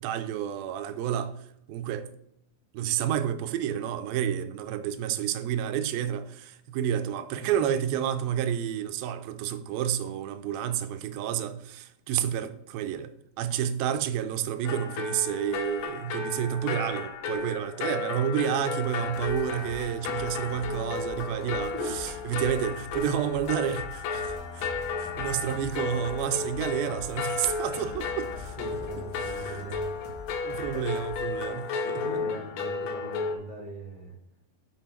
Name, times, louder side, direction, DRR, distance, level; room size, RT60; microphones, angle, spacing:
voice 1, 0.0-1.3 1.7-2.1 2.7-13.1 13.4-28.5 30.4-32.0, right 9 dB, 85° right, 2.5 m, -30 dB
sound 1, 14.6-33.4, left 4 dB, 80° left, 1.5 m, -34 dB
sound 2, 18.9-31.4, left 3 dB, 50° left, 1.7 m, -44 dB
voice 2, 28.6-30.0 30.6-31.0 31.4-34.1, right 1 dB, 45° right, 1.4 m, -40 dB
7.3 x 5.7 x 4.3 m
omnidirectional pair, 4.1 m